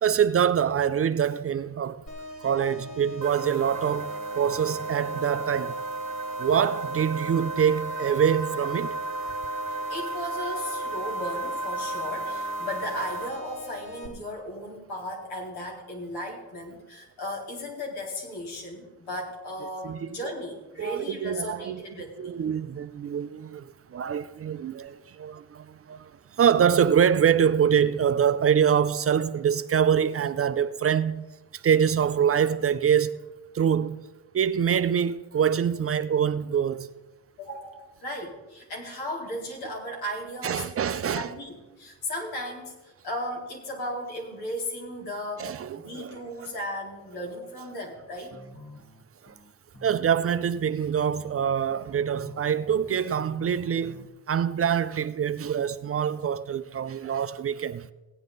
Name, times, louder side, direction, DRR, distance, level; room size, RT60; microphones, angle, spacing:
voice 1, 0.0-2.0 2.4-5.8 6.4-9.0 19.8-20.1 20.8-21.8 22.2-31.3 31.5-33.2 33.5-34.0 34.3-36.9 40.4-41.3 45.4-46.3 49.2-49.3 49.8-57.9, right 8 dB, 35° right, 0.5 m, -25 dB
sound 1, 2.1-14.1, left 2 dB, 50° left, 3.0 m, -42 dB
sound 2, 3.2-13.3, right 2 dB, 55° right, 1.2 m, -34 dB
voice 2, 9.7-22.3 37.4-45.6 45.8-48.3, left 1 dB, 75° left, 4.0 m, -36 dB
sound 3, 48.3-54.1, left 1 dB, 35° left, 1.6 m, -49 dB
17.0 x 9.3 x 4.0 m
cardioid pair, 90°, 38 cm